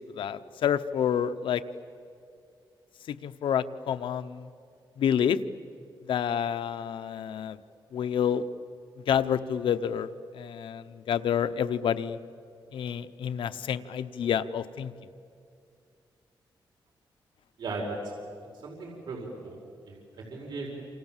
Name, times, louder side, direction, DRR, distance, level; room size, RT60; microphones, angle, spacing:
voice 1, 0.1-1.6 3.1-4.5 5.0-5.4 6.1-7.6 7.9-8.5 9.1-12.2 12.7-14.9, left 8 dB, 90° left, 11 dB, 0.9 m, -28 dB
voice 2, 17.6-18.0 18.6-19.6 19.9-20.7, right 3 dB, 65° right, -1 dB, 5.0 m, -37 dB
28.0 x 28.0 x 7.5 m, 2.4 s
wide cardioid pair, 120°, 8 cm